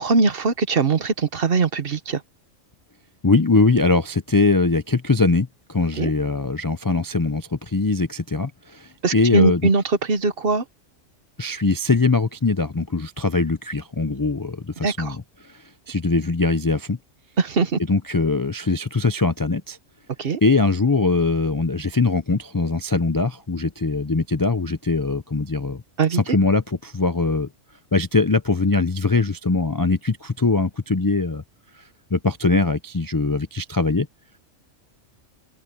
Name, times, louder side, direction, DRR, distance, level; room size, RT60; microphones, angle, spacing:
voice 1, 0.0-2.2 6.0-6.1 9.0-10.6 14.8-15.2 17.4-17.8 20.2-20.4 26.0-26.2, right 4 dB, 50° right, 1.2 m, -21 dB
voice 2, 3.2-9.6 11.4-15.2 15.4-17.0 17.9-19.8 20.4-25.8 26.1-27.5 27.9-31.4 32.1-34.1, left 3 dB, 30° left, 0.4 m, -21 dB
open air
omnidirectional pair, 1.3 m